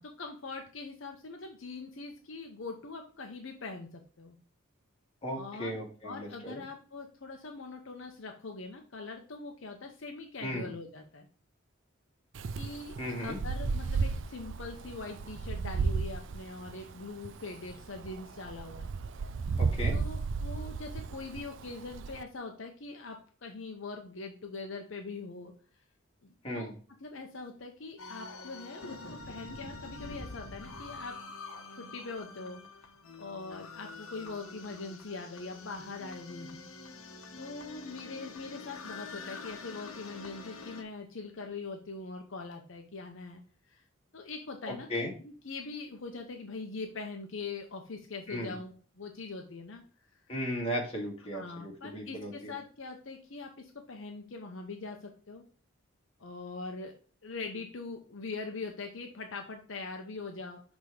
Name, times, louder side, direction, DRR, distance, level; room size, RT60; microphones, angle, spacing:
voice 1, 0.0-4.4 5.3-11.3 12.5-18.9 19.9-25.5 26.2-26.7 27.0-31.3 31.7-36.6 37.4-43.8 44.1-49.8 50.1-50.2 51.3-55.4 56.2-56.9 57.2-60.6, left 3 dB, 60° left, 3 dB, 0.8 m, -42 dB
voice 2, 5.2-6.6 10.4-10.7 13.0-13.4 19.6-20.0 26.4-26.7 44.6-45.1 48.3-48.5 50.3-52.5, equal, 30° left, -1 dB, 1.8 m, -36 dB
Wind, 12.3-22.2, right 4 dB, 60° right, 0.4 m, -34 dB
sound 1, 28.0-40.8, left 3 dB, 80° left, 1.0 m, -46 dB
6.1 x 3.6 x 4.9 m, 0.40 s
head